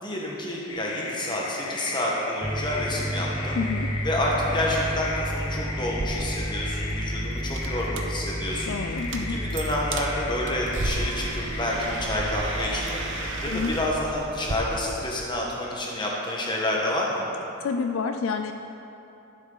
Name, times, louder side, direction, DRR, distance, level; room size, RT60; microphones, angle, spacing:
voice 1, 0.0-3.6 4.0-13.0 13.4-17.2, left 1 dB, 20° left, -3 dB, 1.4 m, -29 dB
sound 1, 0.7-13.6, left 3 dB, 85° left, 1.3 m, -37 dB
sound 2, 2.4-14.5, right 1 dB, 5° right, 0.4 m, -33 dB
voice 2, 3.6-3.9 8.7-9.4 13.5-13.8 17.6-18.5, left 5 dB, 65° left, 7 dB, 0.4 m, -28 dB
sound 3, 5.9-14.6, right 2 dB, 55° right, 0.7 m, -35 dB
12.5 x 7.3 x 4.0 m, 2.9 s
head